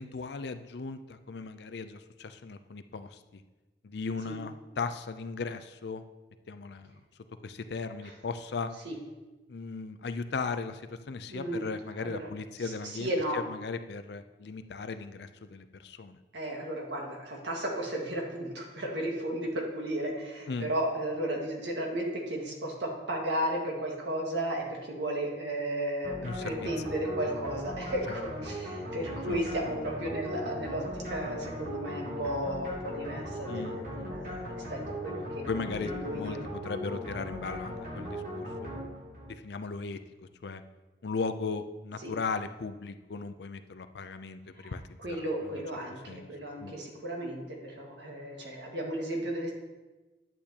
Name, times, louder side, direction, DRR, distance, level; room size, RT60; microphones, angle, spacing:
voice 1, 0.0-3.4 3.8-6.0 6.5-7.0 7.4-8.7 9.5-16.2 20.5-20.7 26.2-26.7 29.1-29.5 33.5-34.4 35.5-38.7 39.3-40.0 40.4-40.6 41.0-45.3 46.1-46.3 46.6-46.7, left 4 dB, 65° left, 10 dB, 0.5 m, -37 dB
voice 2, 11.3-11.6 12.0-12.3 12.6-13.4 16.3-35.5 35.8-36.4 42.0-42.1 44.5-44.7 45.0-49.5, right 1 dB, 75° right, 0 dB, 1.7 m, -34 dB
sound 1, 26.0-39.4, equal, 45° right, 2.3 m, -38 dB
11.0 x 8.3 x 2.9 m, 1.2 s
head